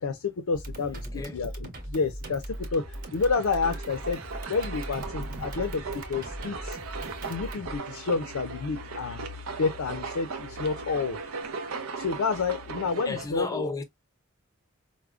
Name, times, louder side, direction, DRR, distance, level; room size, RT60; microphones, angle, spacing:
voice 1, 0.0-1.1 1.3-4.2 4.5-6.8 7.3-9.2 9.6-11.2 12.0-13.7, left 4 dB, 80° left, 0.5 m, -29 dB
sound 1, 0.5-7.8, right 1 dB, 40° right, 0.9 m, -39 dB
voice 2, 1.0-1.5 13.0-13.8, left 2 dB, 15° left, 0.5 m, -33 dB
sound 2, 2.5-13.3, right 4 dB, 80° right, 0.6 m, -38 dB
4.7 x 2.1 x 2.4 m
head